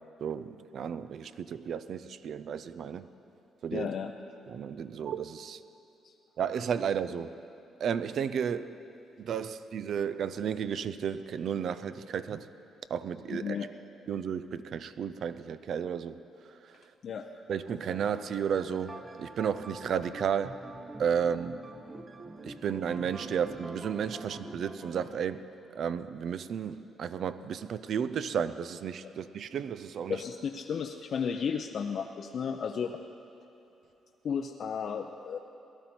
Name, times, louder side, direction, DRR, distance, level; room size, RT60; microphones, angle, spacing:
voice 1, 0.2-3.1 3.6-3.9 4.5-5.6 6.4-7.3 7.8-8.8 9.2-12.5 12.9-13.7 14.1-16.2 16.5-16.8 17.5-20.6 21.0-21.6 22.4-30.2, right 7 dB, 65° right, 13 dB, 0.5 m, -33 dB
voice 2, 3.7-4.1 6.0-6.1 13.3-13.7 17.0-17.3 29.0-29.1 30.1-33.0 34.2-35.4, left 7 dB, 60° left, 4 dB, 0.6 m, -33 dB
sound 1, 17.6-25.2, right 2 dB, 25° right, 0.8 m, -46 dB
18.5 x 12.5 x 4.4 m, 2.9 s
cardioid pair, 90°, 0 cm